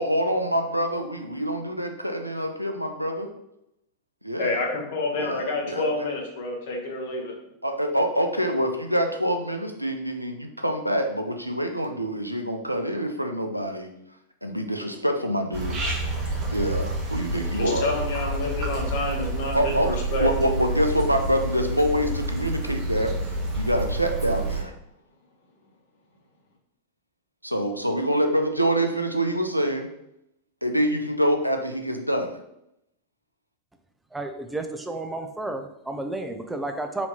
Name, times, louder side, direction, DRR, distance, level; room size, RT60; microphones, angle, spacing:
voice 1, 0.0-3.3 4.2-4.6 5.1-5.9 7.6-13.9 14.4-15.8 16.5-17.9 19.5-23.2 23.5-24.7 27.4-29.9 30.6-32.4, equal, 90° right, 5 dB, 0.4 m, -26 dB
voice 2, 4.4-7.3 17.5-20.5, left 2 dB, 55° left, 1 dB, 0.9 m, -28 dB
sound 1, 15.5-24.6, right 2 dB, 30° right, 1.0 m, -29 dB
voice 3, 34.1-37.1, right 2 dB, 5° right, 5 dB, 0.4 m, -32 dB
4.2 x 2.7 x 2.8 m, 0.81 s
figure-of-eight pair, 90°, 0 cm